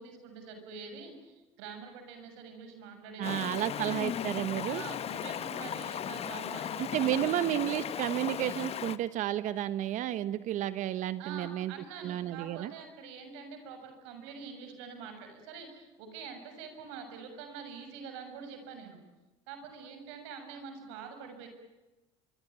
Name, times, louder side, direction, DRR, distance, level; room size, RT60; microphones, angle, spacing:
voice 1, 0.0-4.1 4.7-7.4 11.2-19.0 19.5-21.5, right 5 dB, 80° right, 6 dB, 7.0 m, -45 dB
Stream, 3.2-9.0, left 9 dB, 45° left, 1.3 m, -36 dB
voice 2, 3.2-4.8 6.8-11.7 12.0-12.7, right 12 dB, 60° right, 14 dB, 1.2 m, -32 dB
25.0 x 24.5 x 9.3 m, 1.1 s
supercardioid pair, 85°, 14 cm